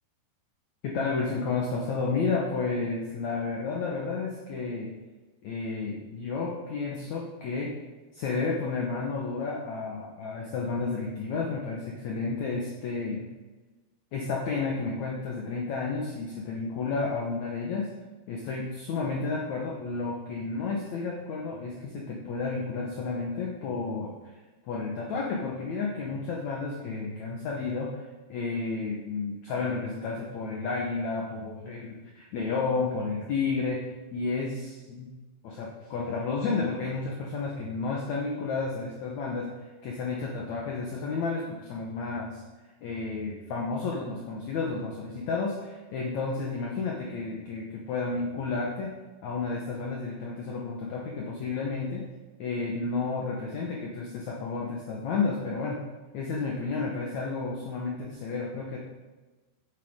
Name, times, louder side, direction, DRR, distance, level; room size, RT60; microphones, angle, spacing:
voice 1, 0.8-4.9 5.4-7.8 8.1-13.3 14.1-17.9 18.3-24.1 24.7-35.1 35.4-39.5 39.8-42.4 42.8-48.9 49.2-52.0 52.4-55.8 56.1-58.8, left 4 dB, 75° left, -1 dB, 1.7 m, -31 dB
13.5 x 8.2 x 3.7 m, 1.2 s
omnidirectional pair, 4.8 m